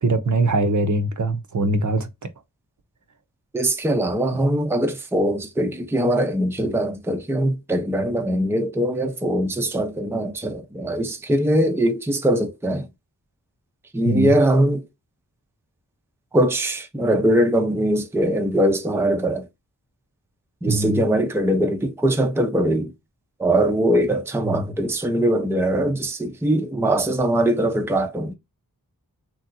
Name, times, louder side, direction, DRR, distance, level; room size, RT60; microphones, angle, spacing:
voice 1, 0.0-2.3 14.0-14.4 20.7-21.0 24.5-24.7, right 2 dB, 50° right, 0.7 m, -22 dB
voice 2, 3.5-12.9 13.9-14.8 16.3-19.5 20.6-22.9 23.4-28.3, right 1 dB, 5° right, 0.5 m, -21 dB
3.1 x 2.8 x 2.5 m
wide cardioid pair, 55°, 38 cm